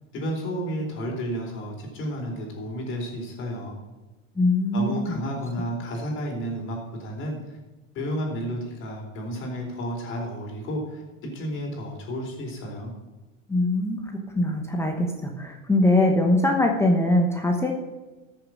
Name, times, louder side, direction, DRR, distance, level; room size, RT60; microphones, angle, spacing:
voice 1, 0.1-3.8 4.7-7.6 7.9-11.0 11.3-12.9, equal, 30° left, 0 dB, 3.9 m, -32 dB
voice 2, 4.3-5.2 13.5-14.0 14.3-17.7, left 1 dB, 5° left, 2 dB, 1.0 m, -22 dB
13.5 x 6.7 x 6.3 m, 1.2 s
supercardioid pair, 150°, 40 cm